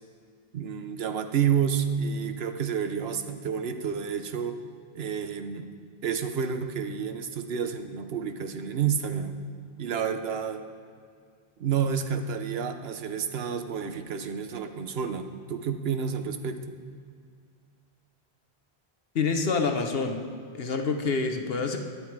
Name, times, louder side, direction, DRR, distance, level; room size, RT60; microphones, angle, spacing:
voice 1, 0.5-4.6 4.9-5.7 6.0-9.3 9.8-10.6 11.6-16.6, right 7 dB, 70° right, 8 dB, 1.0 m, -29 dB
voice 2, 19.1-20.2 20.5-21.8, left 4 dB, 65° left, 5 dB, 1.1 m, -27 dB
12.5 x 10.0 x 4.6 m, 2.2 s
omnidirectional pair, 1.1 m